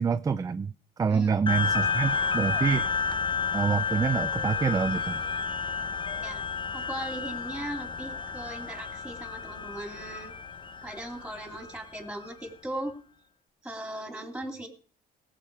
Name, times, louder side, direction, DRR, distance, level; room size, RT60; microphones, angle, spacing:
voice 1, 0.0-2.9 3.5-5.2, right 6 dB, 20° right, 0.5 m, -27 dB
sound 1, 1.5-12.3, left 5 dB, 30° left, 0.9 m, -31 dB
voice 2, 6.7-10.3 10.8-12.9 13.6-14.7, right 1 dB, 5° right, 3.1 m, -38 dB
17.5 x 7.5 x 4.9 m
cardioid pair, 110°, 17 cm